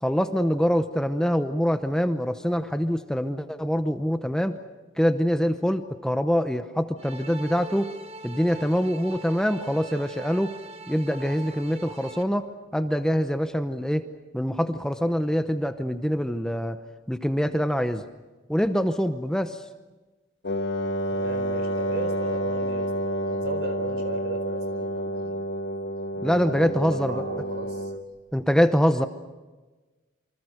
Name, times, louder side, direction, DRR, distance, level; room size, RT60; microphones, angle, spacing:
voice 1, 0.0-4.6 5.0-7.9 8.2-10.6 10.9-14.0 14.3-16.8 17.1-18.0 18.5-19.6 26.2-27.2 28.3-29.1, equal, 5° left, 8 dB, 0.8 m, -24 dB
sound 1, 7.0-12.2, right 3 dB, 35° right, 1.4 m, -42 dB
Wind instrument woodwind instrument, 20.4-28.1, right 1 dB, 65° left, 1.6 m, -29 dB
voice 2, 21.1-25.3 26.1-27.9, right 2 dB, 65° right, 8 dB, 4.4 m, -36 dB
27.5 x 25.0 x 6.5 m, 1.2 s
head